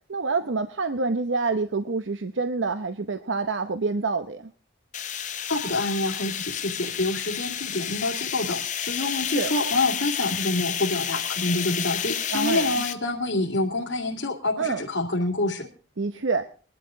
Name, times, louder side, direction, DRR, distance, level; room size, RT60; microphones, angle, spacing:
voice 1, 0.1-4.5 9.3-9.5 12.3-12.8 14.6-14.8 16.0-16.4, right 4 dB, 80° right, 10 dB, 0.8 m, -27 dB
sound 1, 4.9-12.9, left 9 dB, 40° left, 0.9 m, -31 dB
voice 2, 5.5-15.7, left 2 dB, 85° left, -4 dB, 2.3 m, -27 dB
21.0 x 12.0 x 3.7 m, 0.39 s
head